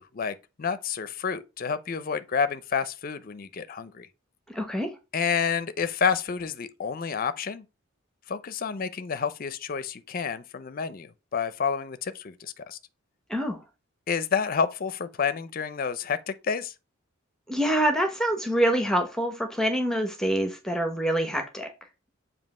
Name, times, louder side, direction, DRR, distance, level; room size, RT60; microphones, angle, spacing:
voice 1, 0.0-4.1 5.1-7.6 8.3-12.8 14.1-16.7, left 6 dB, 40° left, 0.5 m, -29 dB
voice 2, 4.5-4.9 13.3-13.6 17.5-21.7, right 1 dB, 5° left, 0.7 m, -26 dB
7.3 x 2.8 x 5.3 m
head